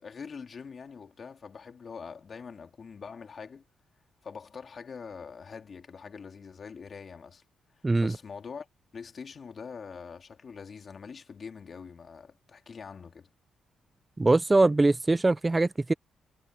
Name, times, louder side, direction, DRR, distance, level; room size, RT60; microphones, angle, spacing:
voice 1, 0.0-3.6 4.2-7.4 7.8-8.7 8.9-13.3, left 5 dB, 50° left, 2.8 m, -44 dB
voice 2, 14.2-15.9, right 2 dB, 20° right, 0.6 m, -22 dB
cardioid pair, 70°, 0 cm